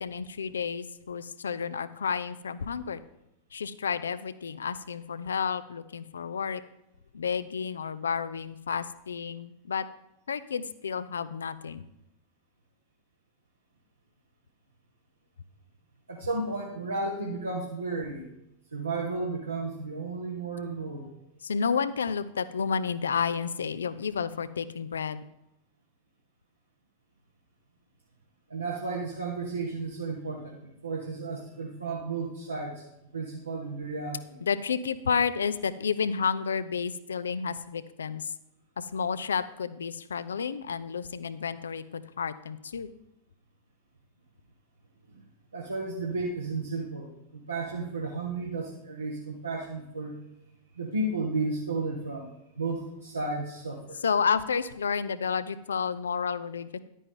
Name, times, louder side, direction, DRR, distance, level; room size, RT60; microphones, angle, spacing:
voice 1, 0.0-3.0 3.5-6.6 7.1-9.9 10.3-11.8 21.4-25.2 34.4-38.3 38.8-42.9 54.0-56.8, left 6 dB, 70° left, 15 dB, 0.5 m, -31 dB
voice 2, 16.1-18.3 18.7-21.1 28.5-32.9 33.1-34.4 45.1-45.2 45.5-50.1 50.7-54.0, right 3 dB, 80° right, -2 dB, 1.4 m, -33 dB
11.0 x 9.3 x 3.8 m, 0.85 s
figure-of-eight pair, 90°, 0 cm